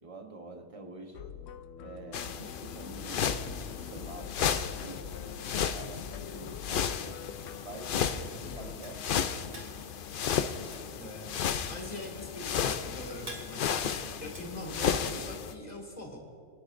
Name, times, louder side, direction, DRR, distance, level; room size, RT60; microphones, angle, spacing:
voice 1, 0.0-1.2 1.8-3.3 3.6-7.0 7.6-9.4, right 2 dB, 30° right, 4 dB, 1.0 m, -47 dB
sound 1, 1.1-8.8, left 8 dB, 90° left, 1.0 m, -45 dB
sound 2, 2.1-15.5, left 7 dB, 55° left, 0.6 m, -33 dB
sound 3, 8.8-15.4, right 1 dB, 45° right, 2.6 m, -50 dB
voice 2, 11.0-11.3 11.7-16.2, left 1 dB, 35° left, -1 dB, 2.3 m, -43 dB
26.0 x 9.8 x 2.6 m, 2.4 s
omnidirectional pair, 1.3 m